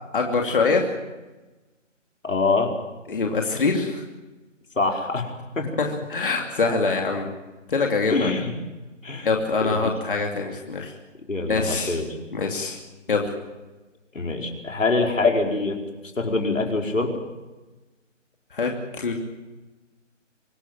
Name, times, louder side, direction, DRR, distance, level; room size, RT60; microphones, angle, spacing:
voice 1, 0.1-1.0 3.1-4.0 5.8-7.3 7.7-8.3 9.2-10.9 11.5-12.0 12.3-12.8 13.1-13.3 18.5-19.1, left 4 dB, 45° left, 2 dB, 2.7 m, -24 dB
voice 2, 2.2-2.7 4.7-5.3 5.6-5.7 8.1-8.5 9.0-9.3 9.6-9.8 11.3-12.1 14.1-15.8 16.1-17.1, left 3 dB, 85° left, 2 dB, 4.8 m, -24 dB
25.0 x 14.5 x 9.1 m, 1.1 s
hypercardioid pair, 175°, 38 cm